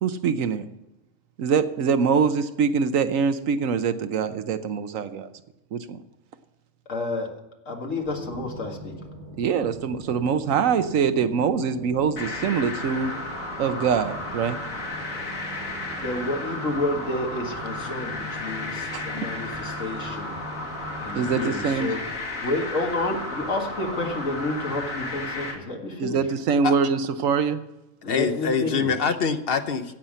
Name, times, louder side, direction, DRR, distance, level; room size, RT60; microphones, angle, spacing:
voice 1, 0.0-0.7 1.4-5.3 5.7-6.0 9.4-13.1 13.6-14.6 18.9-19.1 21.1-21.9 26.0-27.7, right 6 dB, 85° right, 11 dB, 1.2 m, -24 dB
voice 2, 6.9-7.3 7.7-8.9 16.0-20.3 21.0-22.0 22.4-26.2 28.0-28.9, left 2 dB, 75° left, 2 dB, 2.2 m, -30 dB
sound 1, 8.0-21.7, right 1 dB, 60° right, 2.3 m, -42 dB
sound 2, 12.2-25.5, left 2 dB, 90° left, 2.8 m, -33 dB
voice 3, 28.1-29.9, left 6 dB, 50° left, 9 dB, 1.0 m, -24 dB
16.0 x 5.7 x 7.6 m, 0.97 s
omnidirectional pair, 1.3 m